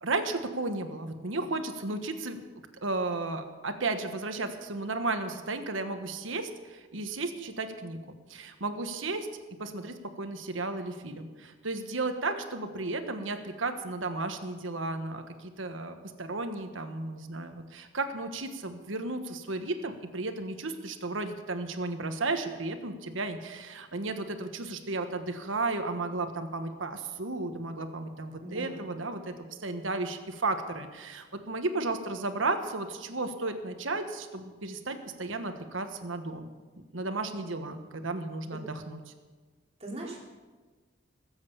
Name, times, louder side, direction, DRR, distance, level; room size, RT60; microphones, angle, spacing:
voice 1, 0.0-2.4 2.8-8.0 8.3-9.3 9.6-29.3 29.6-36.5 36.9-39.0, right 3 dB, 80° right, 7 dB, 1.3 m, -34 dB
voice 2, 28.4-28.9 39.8-40.2, right 2 dB, 30° right, -2 dB, 2.8 m, -40 dB
19.5 x 8.0 x 7.1 m, 1.4 s
head